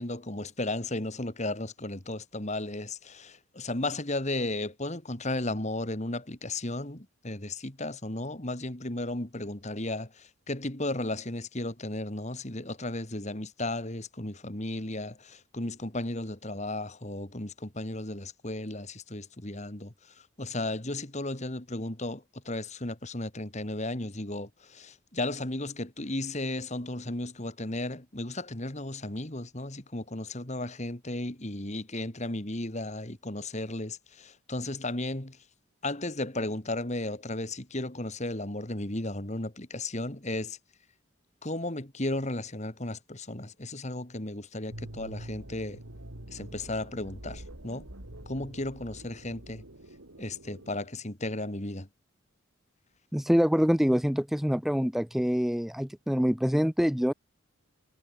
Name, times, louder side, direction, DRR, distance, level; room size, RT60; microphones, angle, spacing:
voice 1, 0.0-19.9 20.4-35.4 35.8-40.6 41.4-45.8 46.3-47.9 48.3-49.6 50.2-51.9, left 2 dB, 35° left, 2.3 m, -34 dB
sound 1, 44.7-50.9, right 1 dB, 80° right, 4.0 m, -45 dB
voice 2, 53.1-57.1, equal, ahead, 0.3 m, -25 dB
head